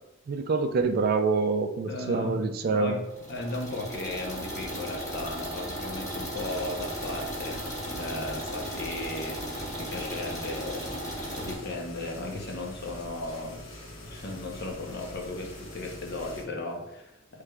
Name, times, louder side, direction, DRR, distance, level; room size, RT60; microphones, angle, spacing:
voice 1, 0.3-3.0, right 4 dB, 45° right, 7 dB, 0.3 m, -26 dB
voice 2, 1.9-13.6 14.0-17.4, left 2 dB, 50° left, 2 dB, 0.7 m, -36 dB
sound 1, 3.0-11.5, equal, 15° left, 1.3 m, -36 dB
sound 2, 6.4-16.4, left 1 dB, 65° left, 1.2 m, -44 dB
6.4 x 3.3 x 2.3 m, 0.91 s
head